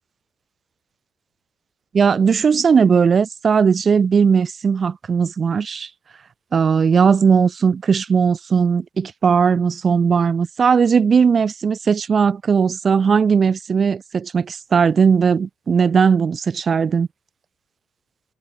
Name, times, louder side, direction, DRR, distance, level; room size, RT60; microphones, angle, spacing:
voice 1, 1.9-5.9 6.5-17.1, right 6 dB, 45° right, 1.3 m, -17 dB
cardioid pair, 90°, 0 cm